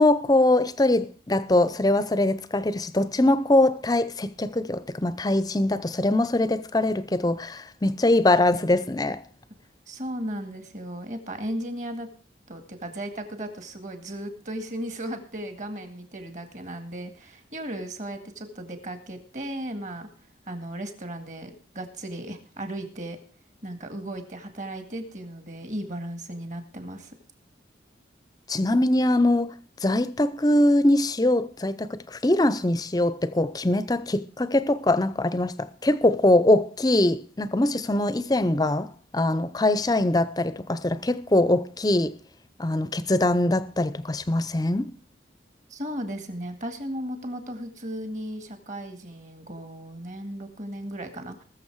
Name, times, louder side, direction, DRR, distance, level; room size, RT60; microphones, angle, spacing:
voice 1, 0.0-9.2 28.5-42.2 42.6-44.9, left 1 dB, 20° left, 0.6 m, -22 dB
voice 2, 9.9-12.1 12.5-20.1 20.5-23.2 23.6-27.1 45.7-51.4, right 1 dB, 40° right, 1.9 m, -36 dB
20.0 x 6.9 x 4.7 m
head